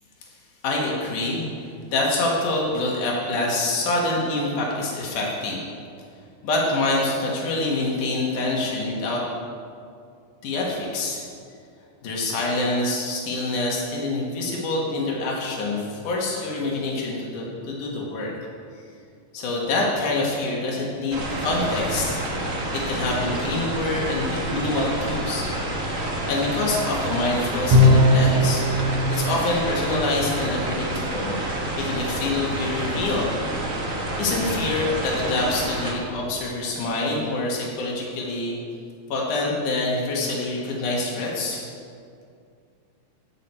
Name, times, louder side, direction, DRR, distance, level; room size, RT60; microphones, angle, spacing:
voice 1, 0.6-5.6 6.4-9.2 10.4-11.2 12.0-18.3 19.3-22.2 22.7-25.5 26.3-28.6 29.1-31.4 31.8-33.3 34.2-38.6 39.1-41.6, left 2 dB, 90° left, -3 dB, 3.1 m, -26 dB
sound 1, 21.1-35.9, right 1 dB, 45° right, 1.1 m, -28 dB
Bowed string instrument, 27.7-28.6, left 1 dB, 75° right, 2.7 m, -15 dB
14.5 x 8.4 x 4.4 m, 2.3 s
omnidirectional pair, 3.5 m